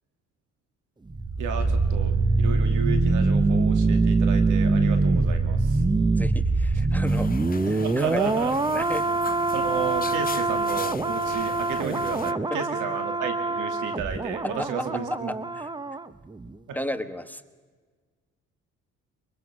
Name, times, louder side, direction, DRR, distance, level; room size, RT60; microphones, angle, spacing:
sound 1, 1.1-16.1 16.3-16.5, right 3 dB, 15° right, 0.7 m, -24 dB
voice 1, 1.4-5.8 7.7-8.5 9.5-15.3 16.7-16.8, right 6 dB, 90° right, 7 dB, 2.5 m, -33 dB
voice 2, 6.2-9.1 12.5-12.6 14.4-14.8 15.1-15.7 16.7-17.4, left 1 dB, 5° left, 9 dB, 1.1 m, -34 dB
sound 2, 7.1-12.3, left 6 dB, 30° left, 0.7 m, -39 dB
23.0 x 22.0 x 6.2 m, 1.4 s
cardioid pair, 90°, 30 cm